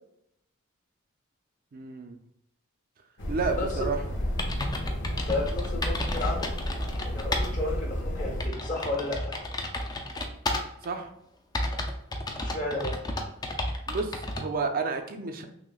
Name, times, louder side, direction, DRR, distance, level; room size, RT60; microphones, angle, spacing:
voice 1, 1.7-2.2 3.3-4.0 10.8-11.1 13.9-15.5, right 4 dB, 40° right, 6 dB, 0.4 m, -31 dB
sound 1, 3.2-8.5, equal, 55° left, 0.7 m, -32 dB
sound 2, 3.9-4.0 4.4-7.5 7.9-8.0 8.4-10.9 11.5-14.5, left 1 dB, 20° left, 0.4 m, -32 dB
voice 2, 5.3-6.5 7.1-9.3 12.3-12.9, left 2 dB, 35° left, -1 dB, 1.0 m, -32 dB
5.9 x 2.1 x 2.3 m, 0.76 s
head